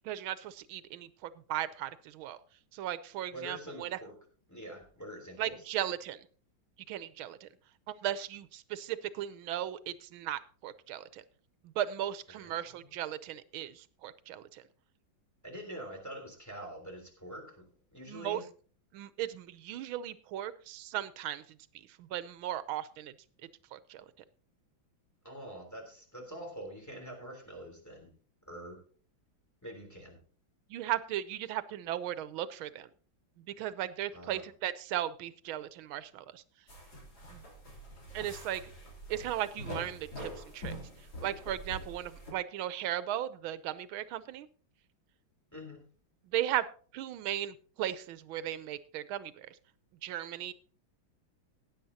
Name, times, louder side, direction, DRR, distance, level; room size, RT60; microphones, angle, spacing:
voice 1, 0.0-2.4 2.7-4.0 5.4-6.3 6.9-7.5 7.9-11.2 11.6-14.6 18.1-18.4 18.9-21.6 21.9-23.1 23.7-24.0 30.7-32.9 33.4-36.4 37.3-37.4 38.1-38.6 39.1-40.7 41.2-44.5 46.2-46.6 46.9-49.6 50.0-50.5, right 12 dB, 90° right, 15 dB, 1.5 m, -36 dB
voice 2, 3.3-4.1 4.5-5.7 12.3-13.0 15.4-17.7 17.9-18.5 25.2-28.1 28.5-28.8 29.6-30.2 34.1-34.5 45.5-45.9, equal, 10° left, -1 dB, 3.3 m, -45 dB
sound 1, 36.7-42.3, equal, 50° left, 3.7 m, -45 dB
18.5 x 9.4 x 2.8 m, 0.42 s
omnidirectional pair, 2.2 m